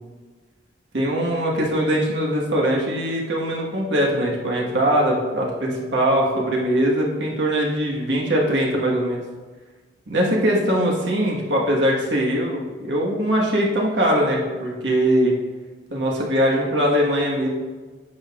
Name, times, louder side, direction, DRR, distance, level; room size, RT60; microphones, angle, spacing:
voice 1, 0.9-9.2 10.1-15.3 15.9-17.5, equal, 75° right, -3 dB, 1.6 m, -21 dB
9.5 x 6.5 x 2.5 m, 1.3 s
head